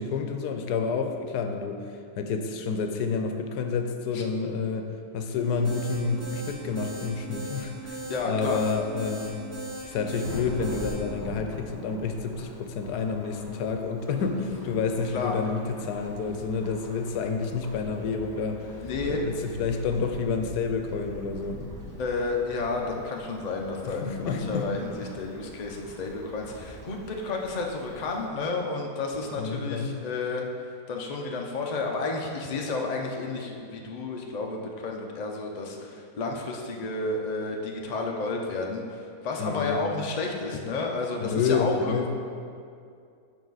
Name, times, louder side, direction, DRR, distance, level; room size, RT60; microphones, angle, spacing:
voice 1, 0.0-1.8 2.2-4.9 5.1-9.4 9.9-18.7 19.1-21.6 23.8-24.7 29.4-30.0 39.4-39.8 41.2-42.1, left 5 dB, 85° left, 5 dB, 1.2 m, -29 dB
sound 1, 5.4-10.9, right 2 dB, 70° right, 2.5 m, -39 dB
voice 2, 8.1-8.6 15.1-15.4 18.8-19.2 22.0-30.5 30.9-42.1, left 3 dB, 55° left, 1 dB, 0.4 m, -31 dB
Thunderstorm / Rain, 10.2-28.3, equal, 20° right, 0.6 m, -44 dB
7.4 x 4.9 x 4.0 m, 2.4 s
omnidirectional pair, 1.7 m